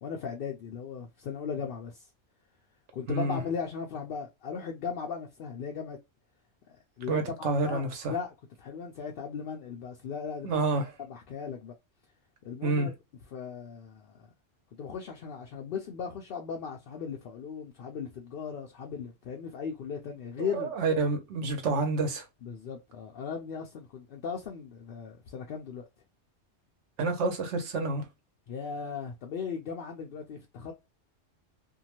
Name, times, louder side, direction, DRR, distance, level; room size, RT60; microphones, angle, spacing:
voice 1, 0.0-2.1 2.9-6.0 6.7-10.6 11.0-11.7 12.4-12.9 13.3-14.3 14.7-20.7 22.4-25.8 28.5-30.7, left 6 dB, 60° left, 0.6 m, -37 dB
voice 2, 3.1-3.4 7.1-8.1 10.4-10.9 12.6-12.9 20.4-22.2 27.0-28.0, right 3 dB, 65° right, 1.1 m, -28 dB
2.7 x 2.2 x 2.8 m
omnidirectional pair, 1.3 m